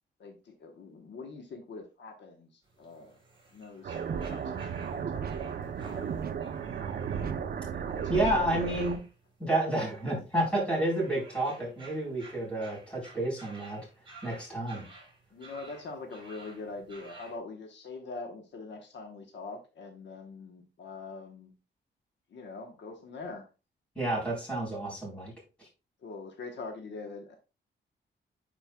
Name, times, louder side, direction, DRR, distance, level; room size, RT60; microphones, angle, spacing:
voice 1, 0.2-3.2 3.5-6.2 7.8-8.8 15.3-21.5 22.3-23.5 26.0-27.4, left 3 dB, 70° left, 1.0 m, -44 dB
sound 1, 2.6-17.4, right 2 dB, 25° right, 3.1 m, -54 dB
sound 2, 3.8-9.0, right 7 dB, 55° right, 0.6 m, -34 dB
voice 2, 8.1-9.0 9.4-13.9 14.2-14.8 24.0-25.3 25.6-25.7, right 1 dB, 5° left, 3.7 m, -30 dB
10.0 x 4.4 x 2.2 m
wide cardioid pair, 150°, 19 cm